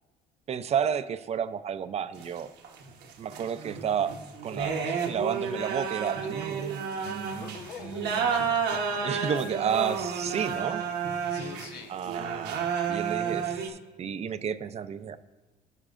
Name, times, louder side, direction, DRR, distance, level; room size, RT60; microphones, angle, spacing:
voice 1, 0.5-2.5 3.2-4.2 4.4-8.3 9.0-10.8 11.9-12.6 12.9-15.2, right 8 dB, 40° right, 12 dB, 0.5 m, -32 dB
sound 1, 2.2-13.7, right 6 dB, 80° right, 1.1 m, -31 dB
voice 2, 7.4-9.4 10.5-10.6 11.3-11.9, left 6 dB, 80° left, 2 dB, 1.0 m, -44 dB
16.0 x 6.5 x 2.5 m, 1.2 s
cardioid pair, 110°, 17 cm